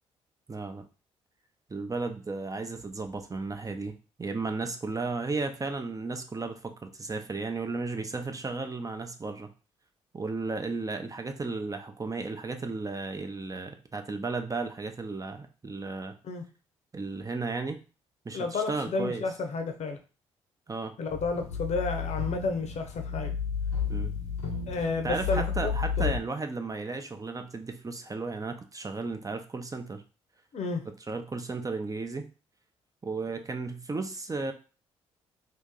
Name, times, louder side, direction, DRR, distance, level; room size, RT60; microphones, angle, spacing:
voice 1, 0.5-0.8 1.7-3.9 4.2-9.5 10.1-16.2 16.9-17.8 18.2-19.3 20.7-20.9 23.9-24.1 24.7-30.0 31.1-32.3 33.0-34.5, right 3 dB, 25° right, 6 dB, 0.7 m, -34 dB
voice 2, 18.3-20.0 21.0-23.3 24.7-26.1 30.5-30.8, left 3 dB, 50° left, 5 dB, 0.8 m, -31 dB
sound 1, 21.1-26.2, left 6 dB, 85° left, 0.9 m, -32 dB
2.8 x 2.7 x 3.6 m, 0.34 s
hypercardioid pair, 45°, 15 cm